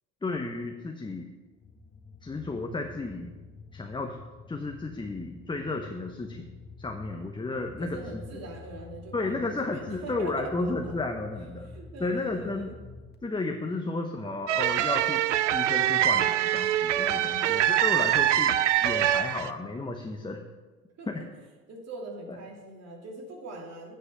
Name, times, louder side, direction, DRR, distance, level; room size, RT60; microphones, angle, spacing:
voice 1, 0.2-1.3 2.2-3.3 3.7-4.2 4.5-6.5 6.8-8.2 9.1-11.7 12.0-12.7 13.2-20.4 21.1-21.2 22.3-22.4, left 3 dB, 15° left, 3 dB, 0.9 m, -33 dB
sound 1, 1.5-13.1, left 3 dB, 30° left, 1.5 m, -48 dB
voice 2, 7.8-10.9 11.4-12.7 17.1-17.6 21.0-21.2 21.7-23.9, right 2 dB, 45° right, -1 dB, 2.9 m, -42 dB
sound 2, 14.5-19.5, right 12 dB, 85° right, 0.5 m, -24 dB
9.6 x 5.6 x 6.9 m, 1.3 s
hypercardioid pair, 70°, 35 cm